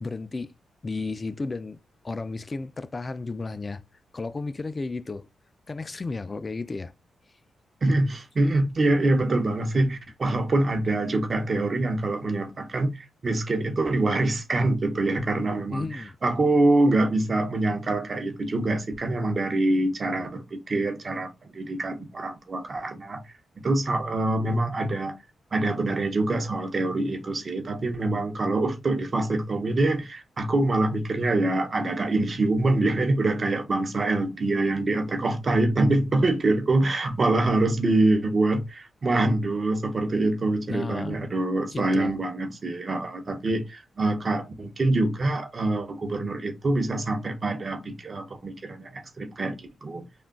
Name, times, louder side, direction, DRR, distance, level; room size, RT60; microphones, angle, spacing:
voice 1, 0.0-0.5 0.8-1.8 2.0-3.8 4.1-5.3 5.7-6.9 15.7-16.2 40.7-41.2 41.7-42.2, left 3 dB, 35° left, 0.3 m, -33 dB
voice 2, 7.8-25.2 25.5-50.0, right 2 dB, 45° right, 0.8 m, -25 dB
3.5 x 2.4 x 2.2 m
cardioid pair, 65°, 0 cm